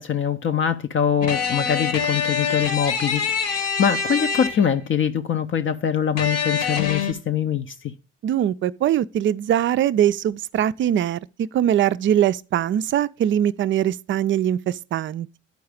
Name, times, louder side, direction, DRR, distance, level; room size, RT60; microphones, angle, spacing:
voice 1, 0.0-7.9, left 8 dB, 35° left, 0.6 m, -23 dB
sound 1, 1.2-4.9 6.2-7.1, left 6 dB, 60° left, 1.3 m, -25 dB
voice 2, 8.2-15.4, right 10 dB, 35° right, 0.4 m, -22 dB
10.5 x 4.7 x 5.0 m
hypercardioid pair, 55°, 36 cm